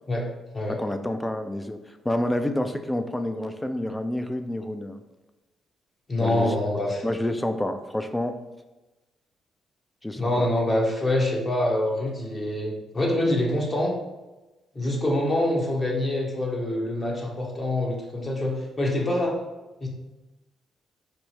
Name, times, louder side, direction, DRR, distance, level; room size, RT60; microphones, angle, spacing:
voice 1, 0.7-1.8 2.0-5.0 6.2-6.5 7.0-8.4 10.0-10.5, left 1 dB, 10° left, 8 dB, 0.3 m, -28 dB
voice 2, 6.1-7.0 10.2-14.0 14.7-19.4 19.8-19.9, left 1 dB, 35° left, -1 dB, 0.9 m, -25 dB
4.4 x 2.0 x 3.1 m, 1.1 s
supercardioid pair, 55°, 0 cm